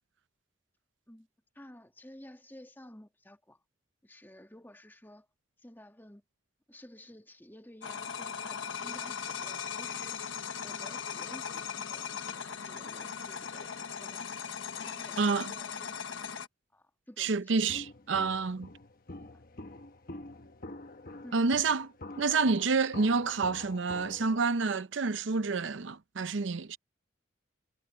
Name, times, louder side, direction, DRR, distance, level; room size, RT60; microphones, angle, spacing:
voice 1, 1.5-3.6 4.0-5.3 5.6-6.2 6.7-10.2 10.6-14.5 14.8-16.3 16.7-17.8 19.2-19.4 21.2-21.4, left 1 dB, 10° left, 2.2 m, -53 dB
sound 1, 7.8-16.5, left 7 dB, 90° left, 1.1 m, -39 dB
voice 2, 15.2-15.5 17.2-18.7 21.3-21.9 22.2-26.8, right 4 dB, 75° right, 0.7 m, -28 dB
Walk footsteps, 17.7-24.4, left 2 dB, 50° left, 1.1 m, -46 dB
head